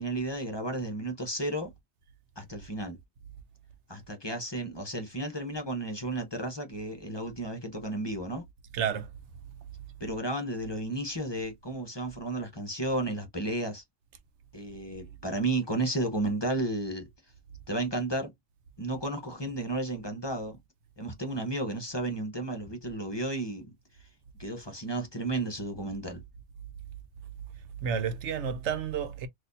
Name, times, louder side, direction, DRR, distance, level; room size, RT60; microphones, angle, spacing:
voice 1, 0.0-1.7 2.4-3.0 3.9-8.4 10.0-13.8 14.5-17.1 17.7-18.3 18.8-20.6 21.0-23.7 24.4-26.2, right 1 dB, 25° left, 0.9 m, -33 dB
voice 2, 8.7-9.1 14.7-14.8 27.8-29.3, right 7 dB, 85° right, 1.0 m, -31 dB
4.1 x 2.7 x 2.6 m
omnidirectional pair, 1.1 m